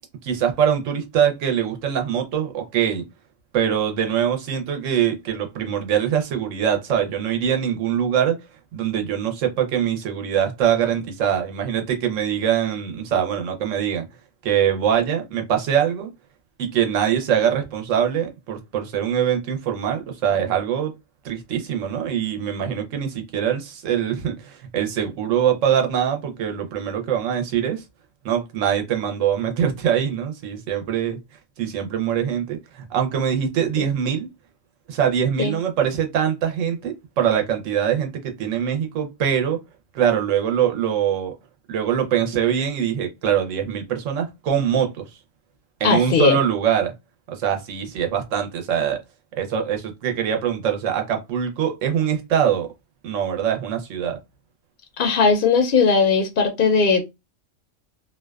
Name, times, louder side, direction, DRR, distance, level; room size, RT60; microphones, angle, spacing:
voice 1, 0.2-3.0 3.5-8.4 8.7-14.1 14.4-16.1 16.6-20.9 21.2-27.8 28.2-31.2 31.6-34.3 34.9-39.6 39.9-41.3 41.7-45.1 45.8-46.9 47.3-49.0 49.3-52.7 53.0-54.2, right 9 dB, 85° right, 1.0 m, -23 dB
voice 2, 45.8-46.4 55.0-57.0, left 5 dB, 60° left, 0.6 m, -18 dB
2.5 x 2.2 x 2.2 m
omnidirectional pair, 1.3 m